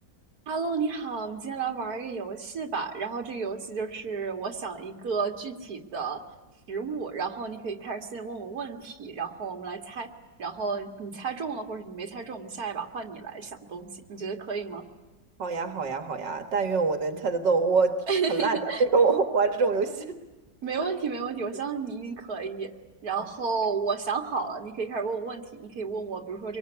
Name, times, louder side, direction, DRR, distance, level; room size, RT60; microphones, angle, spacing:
voice 1, 0.5-6.2 6.7-10.1 10.4-14.8 18.1-18.8 20.6-22.7 23.0-26.6, right 5 dB, 60° right, 3 dB, 2.5 m, -32 dB
voice 2, 15.4-20.2 20.8-20.9 23.2-23.3, right 4 dB, 85° right, 6 dB, 2.2 m, -25 dB
25.5 x 23.5 x 9.9 m, 1.1 s
omnidirectional pair, 1.9 m